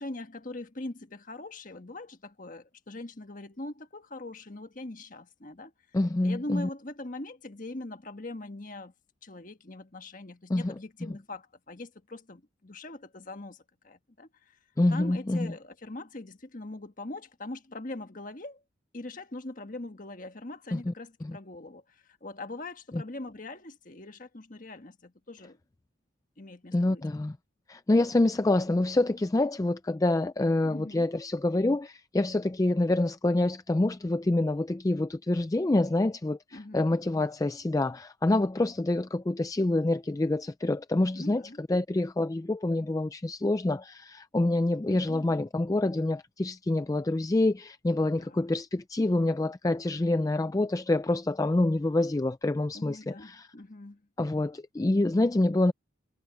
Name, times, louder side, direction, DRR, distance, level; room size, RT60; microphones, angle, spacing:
voice 1, 0.0-5.7 6.2-8.9 9.2-14.6 14.9-18.6 18.9-25.6 26.4-27.0 30.6-31.1 36.5-36.9 41.1-41.6 44.9-45.4 48.2-48.4 52.7-54.0, left 2 dB, 40° left, 1.5 m, -42 dB
voice 2, 5.9-6.7 10.5-10.7 14.8-15.5 20.7-20.9 21.2-21.4 22.9-23.0 26.7-27.4 27.7-53.5 54.2-55.7, left 2 dB, 15° left, 0.3 m, -27 dB
head